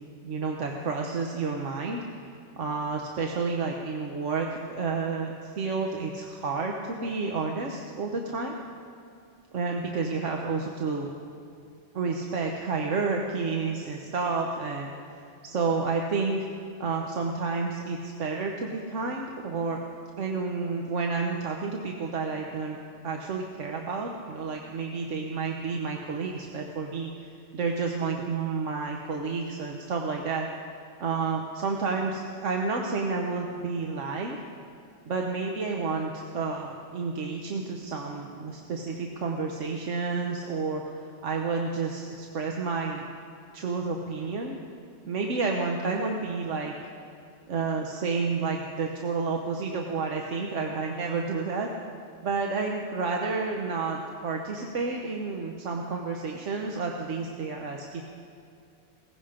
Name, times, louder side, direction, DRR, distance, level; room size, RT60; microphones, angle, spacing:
voice 1, 0.0-2.0 2.6-8.5 9.5-11.1 11.9-16.5 16.8-19.8 20.2-22.8 23.0-30.5 31.0-34.4 35.0-43.0 43.5-44.6 45.1-46.7 47.5-51.7 52.2-58.0, right 4 dB, 80° right, 1 dB, 1.3 m, -30 dB
18.0 x 15.5 x 5.1 m, 2.5 s
omnidirectional pair, 1.2 m